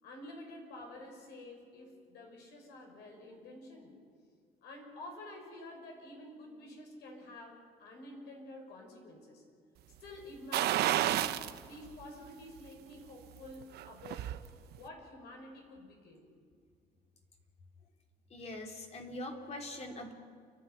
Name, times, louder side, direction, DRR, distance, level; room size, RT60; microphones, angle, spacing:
voice 1, 0.0-3.9 4.6-9.4 10.0-11.3 11.6-14.3 14.7-16.2, left 1 dB, 80° left, 1 dB, 6.2 m, -49 dB
sound 1, 10.5-11.6 12.0-12.1 13.6-14.4 14.7-14.8, right 13 dB, 75° right, 0.8 m, -30 dB
voice 2, 18.3-20.1, left 1 dB, 40° left, 2 dB, 3.3 m, -42 dB
29.5 x 11.5 x 9.6 m, 2.1 s
cardioid pair, 110°, 17 cm